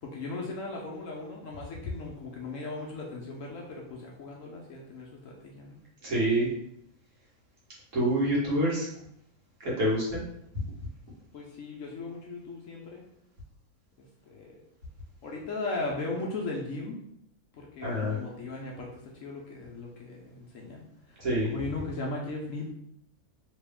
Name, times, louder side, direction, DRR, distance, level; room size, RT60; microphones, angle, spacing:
voice 1, 0.0-5.8 11.3-13.0 14.3-14.6 15.2-17.0 17.5-22.7, left 2 dB, 65° left, -2 dB, 0.9 m, -37 dB
voice 2, 6.0-6.5 7.9-8.9 9.6-10.2 17.8-18.1 21.2-21.5, right 1 dB, 55° right, -6 dB, 1.7 m, -26 dB
3.1 x 2.9 x 3.4 m, 0.75 s
omnidirectional pair, 1.6 m